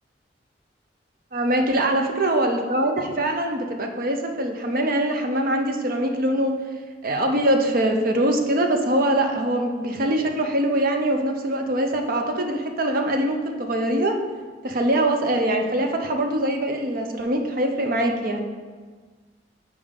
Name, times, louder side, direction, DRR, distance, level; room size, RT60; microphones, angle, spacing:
voice 1, 1.3-6.5 7.0-14.2 14.6-18.5, right 1 dB, 55° right, 4 dB, 0.7 m, -23 dB
6.9 x 4.9 x 3.7 m, 1.5 s
head